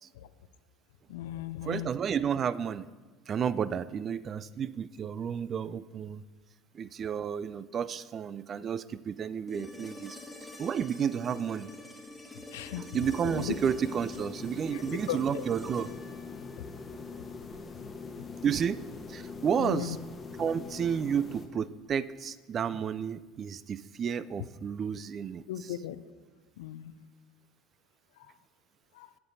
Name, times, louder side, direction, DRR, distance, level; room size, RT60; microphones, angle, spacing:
voice 1, 1.1-1.9 12.5-12.9 13.4-13.6 14.7-14.8 15.1-15.5 19.6-20.0 25.5-26.0 26.6-26.9 29.0-29.1, left 12 dB, 70° left, 14 dB, 0.4 m, -36 dB
voice 2, 1.7-2.9 3.3-6.2 6.7-10.2 10.6-11.7 12.8-16.0 18.4-18.8 19.1-20.0 20.4-25.4, right 7 dB, 40° right, 18 dB, 0.3 m, -31 dB
sound 1, 9.5-17.5 19.7-19.8, left 1 dB, 5° left, 1.7 m, -47 dB
sound 2, 13.0-21.5, left 4 dB, 25° left, 1.0 m, -43 dB
15.5 x 6.7 x 2.6 m, 1.3 s
figure-of-eight pair, 70°, 0 cm